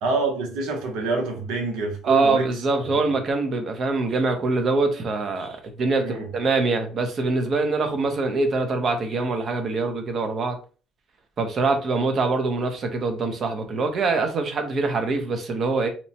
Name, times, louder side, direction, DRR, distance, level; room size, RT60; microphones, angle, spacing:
voice 1, 0.0-2.5 2.8-2.9 6.0-6.3, right 3 dB, 85° right, 0.7 m, -26 dB
voice 2, 2.0-10.6 11.4-15.9, right 3 dB, 40° right, 0.6 m, -24 dB
2.9 x 2.1 x 2.7 m
cardioid pair, 130°, 0 cm